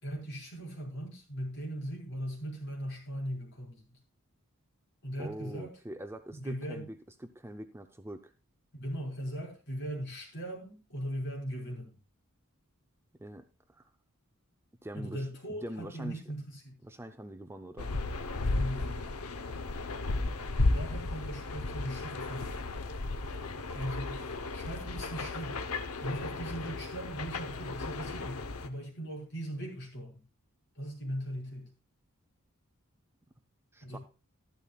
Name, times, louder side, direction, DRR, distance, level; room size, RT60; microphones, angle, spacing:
voice 1, 0.0-4.0 5.0-5.7 6.3-6.8 8.7-11.9 15.0-16.8 18.4-19.1 20.7-22.7 23.7-24.2 24.5-25.6 26.0-30.2 30.8-31.7 33.8-34.0, equal, 55° left, -2 dB, 5.2 m, -39 dB
voice 2, 5.2-8.3 13.2-13.9 14.8-16.2 16.8-17.9 20.2-20.4 33.7-34.0, right 1 dB, 10° right, 8 dB, 0.5 m, -44 dB
sound 1, 17.8-28.7, left 2 dB, 85° left, 0.9 m, -34 dB
12.5 x 12.0 x 2.3 m, 0.32 s
head